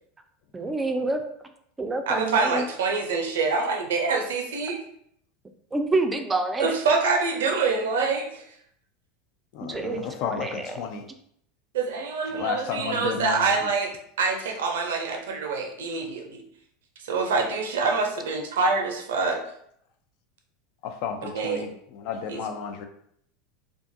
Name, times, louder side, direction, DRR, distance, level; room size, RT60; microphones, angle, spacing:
voice 1, 0.5-1.2 1.8-2.7 5.7-6.7 9.6-10.9, right 2 dB, 15° right, 6 dB, 0.4 m, -27 dB
voice 2, 2.1-4.8 6.6-8.4 11.7-13.9 14.2-16.4 17.0-19.4 21.2-21.7 22.3-22.4, right 4 dB, 80° right, 2 dB, 0.5 m, -25 dB
voice 3, 9.5-11.0 12.3-13.6 20.8-22.9, left 6 dB, 60° left, 6 dB, 0.3 m, -32 dB
2.4 x 2.3 x 2.6 m, 0.69 s
hypercardioid pair, 95°, 0 cm